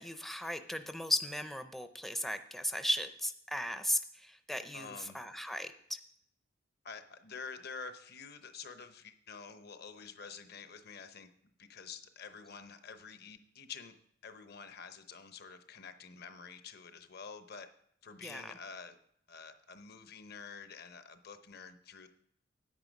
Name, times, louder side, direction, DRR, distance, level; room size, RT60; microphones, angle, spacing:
voice 1, 0.0-6.0 18.2-18.5, left 1 dB, ahead, 9 dB, 0.5 m, -36 dB
voice 2, 4.7-5.2 6.8-11.3 11.6-13.9 14.2-17.7 18.0-19.0 19.3-22.1, left 5 dB, 55° left, 10 dB, 0.8 m, -48 dB
9.6 x 8.7 x 5.3 m, 0.68 s
head